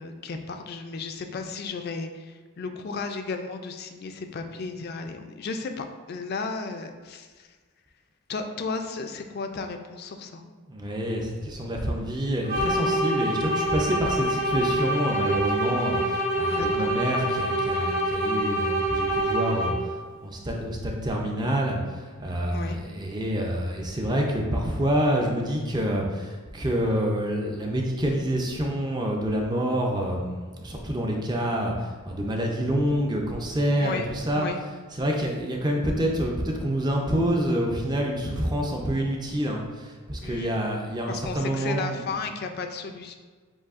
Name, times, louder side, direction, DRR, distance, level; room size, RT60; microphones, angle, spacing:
voice 1, 0.0-7.5 8.3-10.4 16.5-16.9 22.5-22.8 33.8-34.1 34.3-34.6 40.2-40.5 41.1-43.1, left 4 dB, 45° left, 6 dB, 0.3 m, -34 dB
voice 2, 10.7-20.0 20.2-34.5 34.9-42.2, equal, 20° right, 0 dB, 0.4 m, -27 dB
sound 1, 12.4-20.0, right 1 dB, 50° right, 1.4 m, -26 dB
7.2 x 2.7 x 2.4 m, 1.5 s
head